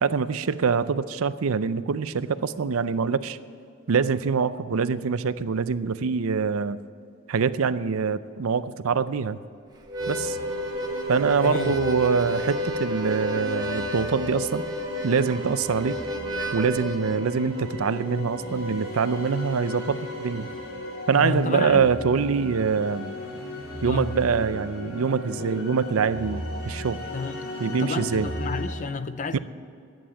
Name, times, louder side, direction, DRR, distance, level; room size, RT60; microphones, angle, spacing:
voice 1, 0.0-3.4 3.9-6.8 7.3-9.4 10.1-10.4 11.1-14.6 15.0-16.0 16.5-20.5 21.1-23.1 23.8-27.1 27.6-28.3 29.3-29.4, right 5 dB, 70° right, 0.5 m, -24 dB
Harmonica, 9.8-17.2, equal, 20° right, 1.0 m, -31 dB
sound 1, 10.0-28.8, left 1 dB, 75° left, 2.8 m, -36 dB
voice 2, 11.4-11.7 21.2-21.9 23.9-24.2 27.1-29.4, left 4 dB, 35° left, 0.4 m, -31 dB
11.5 x 9.1 x 8.9 m
head